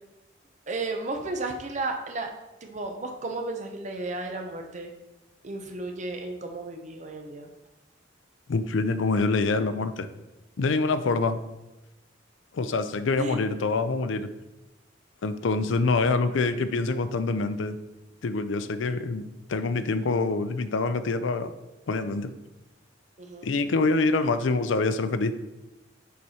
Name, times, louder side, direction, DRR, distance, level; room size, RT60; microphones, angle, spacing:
voice 1, 0.7-2.3 2.6-4.9 5.4-7.5 13.2-13.4 23.2-23.5, right 2 dB, 40° right, 4 dB, 0.9 m, -33 dB
voice 2, 8.5-10.1 10.6-11.4 12.5-14.3 15.2-17.8 18.2-19.2 19.5-21.5 21.9-22.3 23.4-25.3, left 3 dB, 80° left, 11 dB, 0.5 m, -25 dB
7.1 x 4.8 x 4.3 m, 0.99 s
head